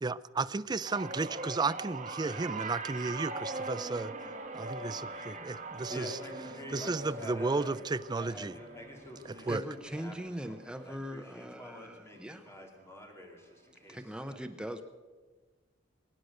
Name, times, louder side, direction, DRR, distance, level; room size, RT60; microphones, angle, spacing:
voice 1, 0.0-4.1 4.5-6.2 6.7-8.6 9.2-9.6, right 3 dB, 20° right, 13 dB, 0.4 m, -33 dB
sound 1, 0.9-11.3 11.6-12.0 13.2-13.3, right 3 dB, 40° right, 1.6 m, -42 dB
sound 2, 3.3-10.3, left 1 dB, 35° left, 2.6 m, -58 dB
voice 2, 5.9-7.8 8.1-14.4, equal, 15° left, 2 dB, 2.5 m, -47 dB
voice 3, 9.5-12.5 13.9-14.8, equal, 5° right, 7 dB, 0.8 m, -41 dB
23.5 x 9.5 x 6.5 m, 1.3 s
head